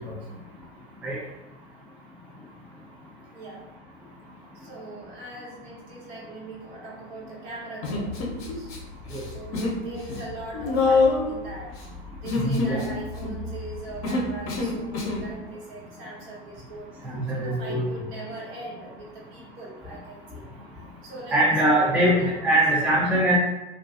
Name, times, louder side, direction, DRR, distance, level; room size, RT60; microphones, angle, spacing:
voice 1, 3.3-3.7 4.5-8.7 9.2-11.8 12.2-16.9 17.3-20.5 21.0-21.4 21.7-22.6, right 2 dB, 65° right, -5 dB, 1.2 m, -40 dB
Human voice, 7.8-8.8 9.1-9.8 10.1-15.3, left 3 dB, 40° left, 0.8 m, -26 dB
voice 2, 12.4-12.8 17.0-17.9 21.3-23.4, right 1 dB, 5° right, -5 dB, 0.4 m, -22 dB
2.4 x 2.3 x 2.4 m, 1.1 s
hypercardioid pair, 90°, 33 cm